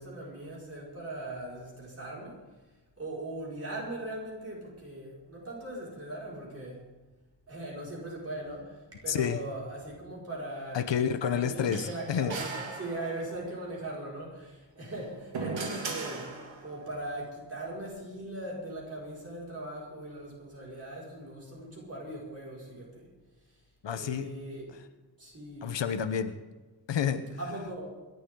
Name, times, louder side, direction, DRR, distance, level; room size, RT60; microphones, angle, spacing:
voice 1, 0.0-2.3 3.0-6.8 7.5-10.9 11.2-16.3 16.6-23.1 24.0-24.8 25.2-25.7 27.4-27.9, right 1 dB, 30° right, -5 dB, 5.6 m, -40 dB
voice 2, 9.1-9.4 10.7-12.4 23.8-24.3 24.7-24.8 25.6-26.4 26.9-27.4, left 8 dB, 70° left, 10 dB, 1.1 m, -30 dB
sound 1, 11.7-13.5 14.8-16.8, right 4 dB, 90° right, 2.6 m, -38 dB
26.0 x 12.0 x 3.9 m, 1.2 s
wide cardioid pair, 170°, 45 cm